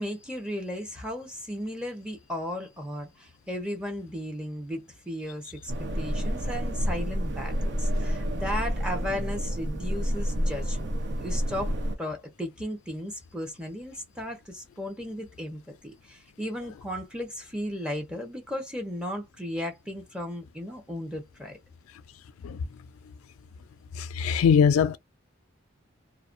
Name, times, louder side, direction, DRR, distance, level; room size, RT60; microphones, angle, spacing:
voice 1, 0.0-10.9 11.2-11.7 12.0-21.6, equal, 5° right, 0.7 m, -35 dB
sound 1, 5.7-12.0, equal, 50° right, 0.5 m, -29 dB
voice 2, 24.2-25.0, left 7 dB, 80° left, 0.3 m, -20 dB
2.4 x 2.1 x 2.4 m
head